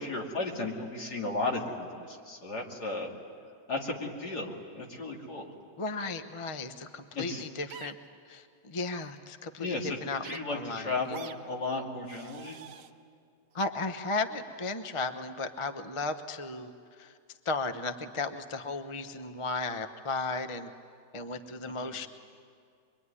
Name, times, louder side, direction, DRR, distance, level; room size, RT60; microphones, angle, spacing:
voice 1, 0.0-3.1 3.7-5.5 7.1-7.4 9.6-10.0 10.2-12.6 21.9-22.0, left 2 dB, 65° left, 0 dB, 3.2 m, -34 dB
voice 2, 5.8-8.0 8.3-11.2 13.5-17.2 17.4-20.7 21.1-22.1, left 3 dB, 25° left, 8 dB, 0.7 m, -35 dB
sound 1, 7.7-7.9 8.9-9.1 10.2-10.4 11.1-11.4 12.0-12.9 13.6-13.7, right 8 dB, 70° right, 1.6 m, -46 dB
24.0 x 24.0 x 9.8 m, 2.3 s
omnidirectional pair, 1.9 m